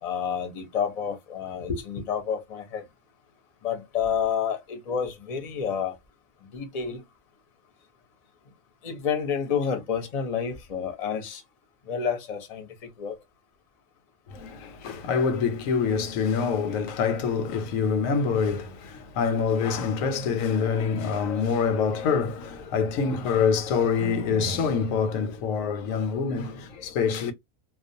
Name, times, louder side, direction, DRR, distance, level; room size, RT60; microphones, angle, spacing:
voice 1, 0.0-2.8 3.6-6.0 6.4-7.0 8.8-11.4 11.9-13.2, left 7 dB, 45° left, 0.5 m, -29 dB
voice 2, 14.3-27.3, left 5 dB, 90° left, 1.0 m, -26 dB
2.3 x 2.2 x 2.6 m
omnidirectional pair, 1.4 m